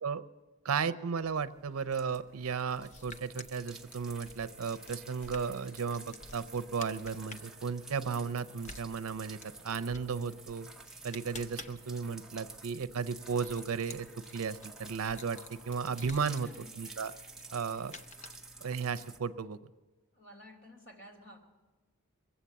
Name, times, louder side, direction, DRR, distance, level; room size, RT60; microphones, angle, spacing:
voice 1, 0.6-9.4 9.6-10.7 11.0-14.1 14.3-16.5 16.8-17.1 17.5-17.9 18.6-19.6, right 6 dB, 85° right, 15 dB, 0.5 m, -34 dB
sound 1, 1.1-19.2, right 3 dB, ahead, 0.7 m, -51 dB
sound 2, 2.7-18.8, left 3 dB, 35° left, 0.6 m, -53 dB
voice 2, 16.1-17.3 20.1-21.4, equal, 55° left, 2 dB, 2.7 m, -54 dB
22.0 x 8.1 x 7.3 m, 1.2 s
head